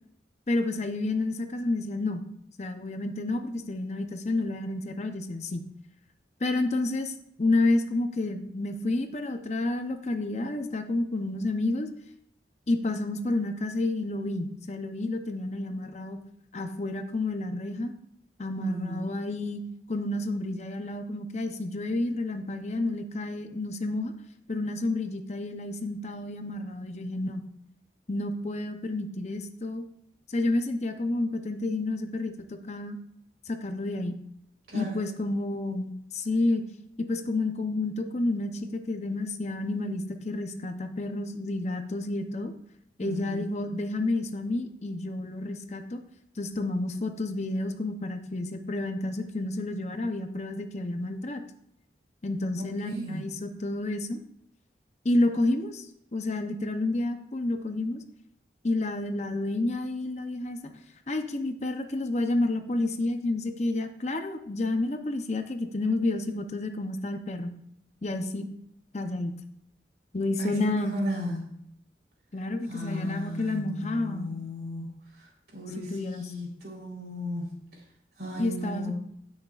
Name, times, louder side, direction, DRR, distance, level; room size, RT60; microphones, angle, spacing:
voice 1, 0.5-2.2 2.6-5.6 6.4-11.9 12.7-16.2 16.5-17.9 18.4-19.6 19.9-24.1 24.5-27.4 28.1-29.8 30.3-33.0 33.5-34.2 34.7-36.6 37.0-42.5 43.0-46.0 46.4-51.4 52.2-54.2 55.0-55.9 56.1-58.0 58.6-60.8 61.1-67.5 68.0-68.5 68.9-69.3 70.1-71.0 72.3-74.3 75.9-76.3 78.4-78.9, left 2 dB, 40° left, 7 dB, 0.7 m, -30 dB
voice 2, 18.6-19.1 34.7-35.1 43.0-43.5 52.9-53.3 70.4-71.6 72.7-77.8 78.2-78.9, equal, 65° right, -3 dB, 3.6 m, -35 dB
17.0 x 6.4 x 2.4 m, 0.73 s
head